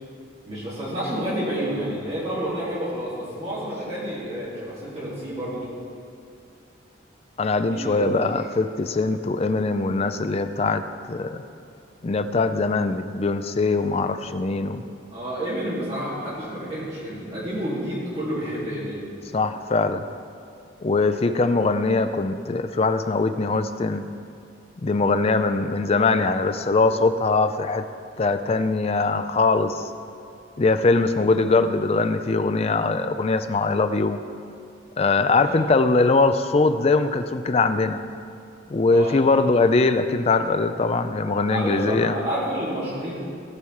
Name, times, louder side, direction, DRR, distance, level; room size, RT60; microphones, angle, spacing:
voice 1, 0.4-5.7 7.6-8.2 15.1-19.0 30.9-31.1 35.4-35.6 38.9-39.1 41.5-43.2, equal, 30° right, -9 dB, 3.1 m, -29 dB
voice 2, 7.4-10.8 11.1-11.4 12.0-14.8 19.3-20.1 20.8-24.0 24.8-27.9 28.2-29.9 30.6-34.2 35.0-38.0 38.7-42.1, left 3 dB, 30° left, 10 dB, 0.4 m, -21 dB
16.5 x 5.7 x 4.8 m, 2.4 s
head